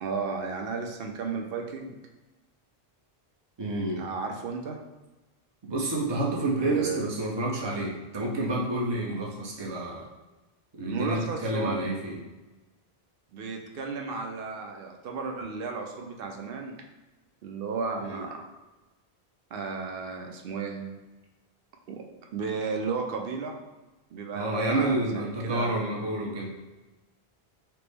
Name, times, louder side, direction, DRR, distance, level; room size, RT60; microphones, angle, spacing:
voice 1, 0.0-1.9 4.0-4.8 6.6-7.0 10.8-11.9 13.3-16.7 17.4-18.4 19.5-20.9 21.9-22.0 22.3-23.6 24.1-26.1, right 4 dB, 65° right, 2 dB, 0.7 m, -34 dB
voice 2, 3.6-4.0 5.6-10.1 10.8-12.2 18.0-18.2 24.3-26.5, right 2 dB, 30° right, -2 dB, 0.6 m, -29 dB
4.4 x 2.0 x 3.3 m, 1.1 s
omnidirectional pair, 1.1 m